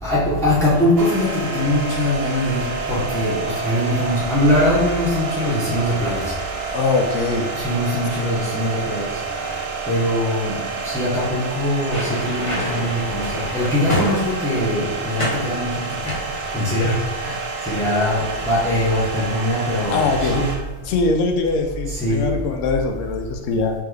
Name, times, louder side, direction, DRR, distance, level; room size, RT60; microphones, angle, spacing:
voice 1, 0.0-6.3 7.5-9.2 9.9-16.1 16.5-20.6 21.9-22.3, left 1 dB, 5° left, -8 dB, 0.5 m, -22 dB
sound 1, 1.0-20.6, right 4 dB, 60° right, 0.9 m, -29 dB
voice 2, 6.7-7.5 19.7-20.4 20.9-23.7, left 3 dB, 75° left, 3 dB, 0.9 m, -22 dB
sound 2, 11.7-14.6 15.2-15.5 16.0-17.2 17.5-17.8, left 1 dB, 30° left, 0.8 m, -28 dB
3.5 x 3.2 x 3.3 m, 1.2 s
omnidirectional pair, 1.3 m